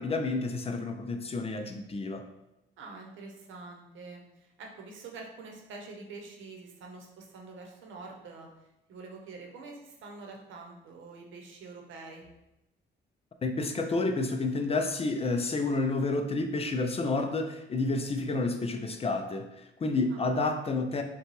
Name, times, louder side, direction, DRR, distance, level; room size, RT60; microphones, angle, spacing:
voice 1, 0.0-2.2 13.4-21.0, left 3 dB, 30° left, 6 dB, 0.4 m, -30 dB
voice 2, 2.8-12.3 20.1-20.3, right 3 dB, 80° right, 1 dB, 0.8 m, -46 dB
5.5 x 2.3 x 3.0 m, 0.92 s
cardioid pair, 90°, 20 cm